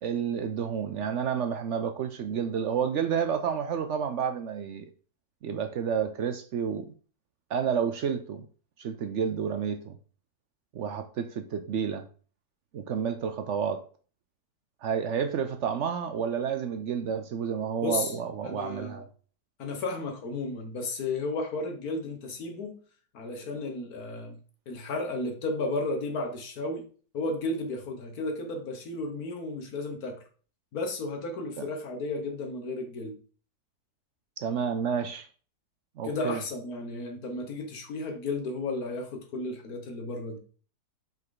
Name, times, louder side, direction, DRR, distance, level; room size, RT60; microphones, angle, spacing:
voice 1, 0.0-4.9 5.4-6.9 7.5-8.4 8.8-10.0 10.7-12.1 12.7-13.8 14.8-19.0 31.6-31.7 34.4-35.3 36.0-36.4, right 7 dB, 70° right, 0.7 m, -30 dB
voice 2, 17.8-18.2 18.4-19.0 19.6-22.8 23.1-24.4 24.7-26.8 27.1-30.2 30.7-33.2 36.0-40.4, left 2 dB, 65° left, 1.7 m, -33 dB
5.4 x 5.3 x 4.0 m
omnidirectional pair, 1.7 m